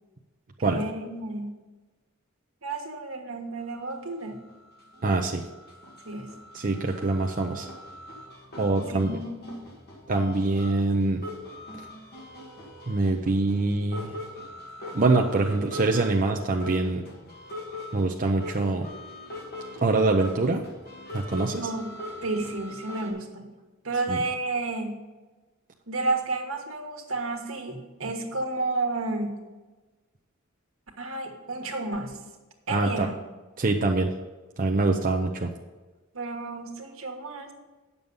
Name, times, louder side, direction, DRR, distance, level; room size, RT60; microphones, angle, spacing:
voice 1, 0.6-1.6 2.6-4.5 6.0-6.3 8.8-9.6 21.6-23.5 23.8-25.1 25.9-29.4 31.0-32.2 32.7-33.2 36.1-37.5, right 2 dB, 75° right, 3 dB, 1.6 m, -31 dB
sound 1, 3.6-3.7 4.0-23.1, left 1 dB, 50° left, 2.0 m, -42 dB
voice 2, 5.0-5.4 6.5-7.7 8.6-9.1 10.1-11.2 12.9-14.2 14.9-17.0 17.9-18.9 19.8-20.6 21.1-21.7 24.1-24.2 32.7-33.1 33.6-34.1 34.6-35.5, right 3 dB, 40° right, 2 dB, 0.7 m, -24 dB
9.3 x 7.0 x 5.4 m, 1.2 s
head